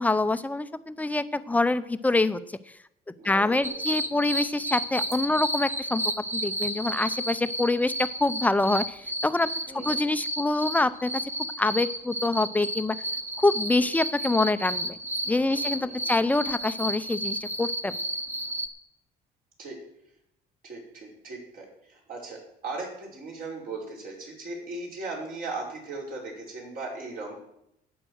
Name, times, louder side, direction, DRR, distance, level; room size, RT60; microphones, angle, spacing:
voice 1, 0.0-2.4 3.2-6.0 6.3-9.5 9.7-11.2 11.6-13.0 13.4-15.0 15.3-17.9, left 2 dB, 10° left, 13 dB, 0.6 m, -25 dB
voice 2, 3.2-4.0 9.7-10.1 13.7-13.8 15.5-16.2 19.6-19.8 20.6-22.4 22.6-27.4, right 3 dB, 55° right, -2 dB, 5.3 m, -38 dB
sound 1, 3.6-18.7, right 1 dB, 15° right, 1.2 m, -32 dB
11.5 x 8.9 x 6.4 m, 0.79 s
cardioid pair, 110°, 17 cm